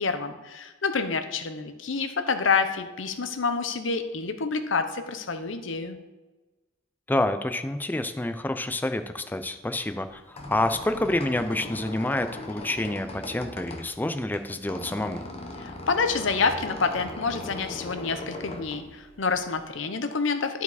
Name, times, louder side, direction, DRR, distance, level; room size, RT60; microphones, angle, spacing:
voice 1, 0.0-6.0 15.6-20.6, left 4 dB, 75° left, 9 dB, 0.8 m, -28 dB
voice 2, 7.1-15.2, left 1 dB, 10° left, 9 dB, 0.4 m, -28 dB
Squeak, 10.0-19.7, left 2 dB, 30° left, 0.8 m, -39 dB
11.5 x 4.7 x 4.1 m, 1.2 s
head